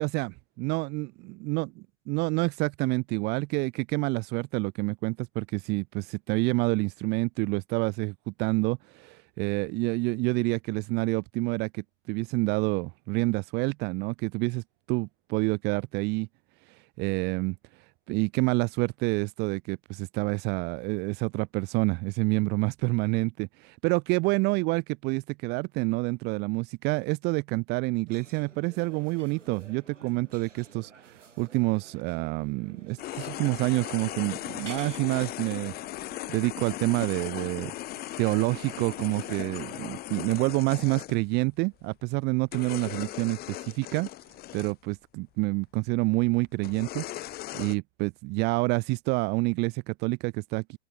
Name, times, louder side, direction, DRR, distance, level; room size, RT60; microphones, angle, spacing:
voice 1, 0.0-16.3 16.7-17.5 18.1-35.7 36.3-37.7 38.2-44.1 44.5-50.8, right 27 dB, 30° right, 0.7 m, -28 dB
sound 1, 28.1-39.9, right 5 dB, 75° right, 5.9 m, -52 dB
sound 2, 33.0-41.2 41.8-42.1 42.5-44.7 45.8-45.9 46.6-47.8, left 15 dB, 25° left, 1.3 m, -38 dB
open air
figure-of-eight pair, 100°, 37 cm